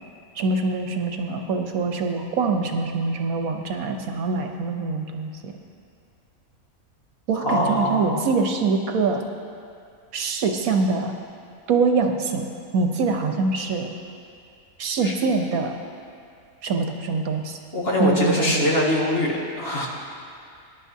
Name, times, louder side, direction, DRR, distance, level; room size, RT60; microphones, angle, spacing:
voice 1, 0.4-5.5 7.3-9.2 10.1-11.1 11.7-12.5 12.7-13.9 14.8-15.8 16.6-17.6 18.0-18.7, right 4 dB, 75° right, 4 dB, 1.3 m, -24 dB
voice 2, 7.4-8.2 15.0-15.1 17.7-19.9, left 1 dB, 45° left, -4 dB, 2.0 m, -23 dB
21.0 x 10.5 x 2.8 m, 2.3 s
omnidirectional pair, 1.5 m